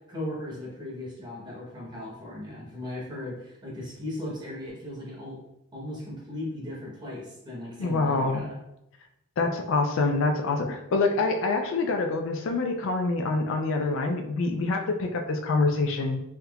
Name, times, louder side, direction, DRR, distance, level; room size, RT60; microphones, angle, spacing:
voice 1, 0.1-5.4 5.7-8.6, left 1 dB, 20° right, -5 dB, 0.9 m, -37 dB
voice 2, 7.8-8.5 9.4-16.2, left 3 dB, 60° left, 4 dB, 0.3 m, -26 dB
3.4 x 2.8 x 2.3 m, 0.83 s
head